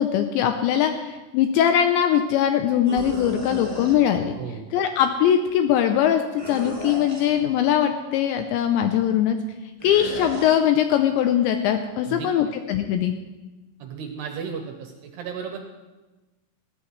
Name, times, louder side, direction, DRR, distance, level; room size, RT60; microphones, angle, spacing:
voice 1, 0.0-4.3 4.7-9.4 9.8-13.1, left 9 dB, 80° left, 7 dB, 2.6 m, -21 dB
sound 1, 2.8-3.9 6.4-7.4 9.8-10.5, left 1 dB, 20° right, 0.6 m, -34 dB
voice 2, 4.4-4.7 12.0-12.4 13.8-15.6, right 6 dB, 75° right, 4 dB, 2.6 m, -34 dB
20.0 x 14.5 x 3.2 m, 1.1 s
omnidirectional pair, 5.7 m